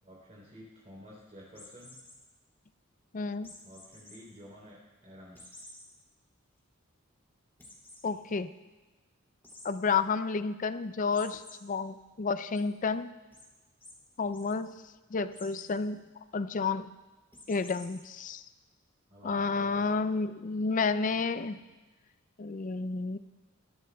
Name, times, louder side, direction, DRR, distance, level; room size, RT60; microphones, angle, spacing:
voice 1, 0.0-2.0 3.6-4.8 5.0-5.7 19.1-20.1, equal, 35° right, -5 dB, 3.5 m, -51 dB
sound 1, 1.5-2.2 3.4-4.2 4.6-4.7 5.3-5.8 6.3-6.4 6.7-6.8 7.6-8.0 9.4-9.7 11.1-11.5 12.0-12.6 13.3-13.5 13.8-13.9 14.2-14.5 15.3-15.7 17.3-18.0, left 1 dB, 10° left, 2.6 m, -51 dB
voice 2, 3.1-3.5 8.0-8.5 9.6-13.1 14.2-14.7 15.1-16.0 16.3-16.9 17.5-18.4 19.2-21.6 22.4-23.2, left 4 dB, 40° left, 12 dB, 0.4 m, -30 dB
21.5 x 13.5 x 2.3 m, 1.2 s
head